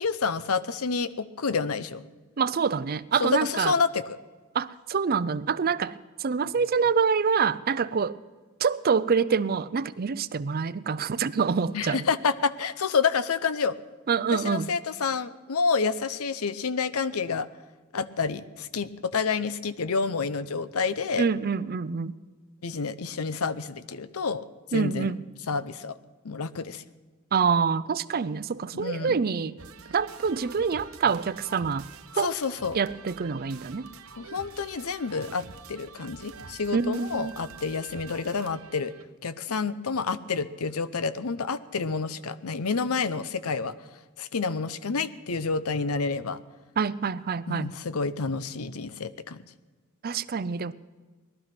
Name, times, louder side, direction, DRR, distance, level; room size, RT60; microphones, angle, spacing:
voice 1, 0.0-2.0 3.2-4.0 11.7-13.8 14.3-17.5 17.9-21.3 22.6-24.4 24.7-25.1 25.5-25.9 26.2-26.8 28.7-29.2 32.1-32.8 34.2-38.9 39.2-43.7 44.2-46.4 47.5-49.4, left 5 dB, 80° left, 0.7 m, -29 dB
voice 2, 2.4-3.7 4.5-8.2 8.6-12.0 14.1-14.7 21.2-22.2 24.7-25.2 27.3-29.6 29.9-31.9 32.2-32.3 32.7-33.9 36.7-37.3 46.8-47.7 50.0-50.7, right 5 dB, 45° right, 0.5 m, -26 dB
sound 1, 29.6-39.1, right 5 dB, 70° right, 1.1 m, -46 dB
19.0 x 12.5 x 6.0 m
head